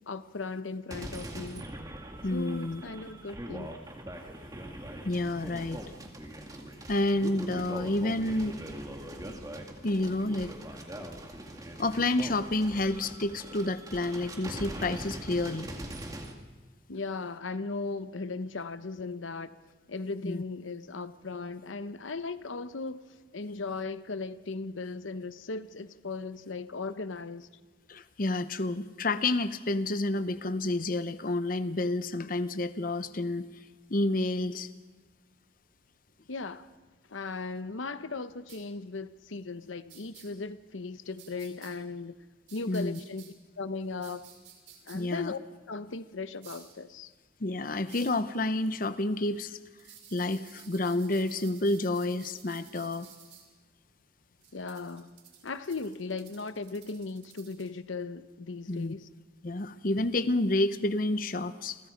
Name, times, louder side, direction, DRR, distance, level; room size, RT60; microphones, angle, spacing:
voice 1, 0.1-1.7 2.3-3.7 16.9-19.5 19.9-27.5 36.3-36.7 37.1-42.2 42.5-44.3 44.9-45.4 45.7-47.1 54.5-55.2 55.4-59.1, left 3 dB, 90° left, 0.9 m, -37 dB
sound 1, 0.9-16.3, right 1 dB, 20° right, 2.2 m, -42 dB
voice 2, 2.2-2.8 5.0-5.8 6.9-8.6 9.8-10.5 11.8-15.7 20.2-20.4 27.9-33.5 33.9-34.7 42.7-43.0 44.9-45.3 47.4-49.6 50.1-53.1 58.7-58.9 59.4-61.8, left 2 dB, 45° left, 0.8 m, -29 dB
sound 2, 38.5-38.6 39.9-40.2 41.2-41.7 42.5-43.3 44.0-45.0 46.4-46.7 47.9-48.2 49.8-53.4 54.4-57.7, right 9 dB, 75° right, 5.7 m, -53 dB
30.0 x 22.5 x 5.2 m
head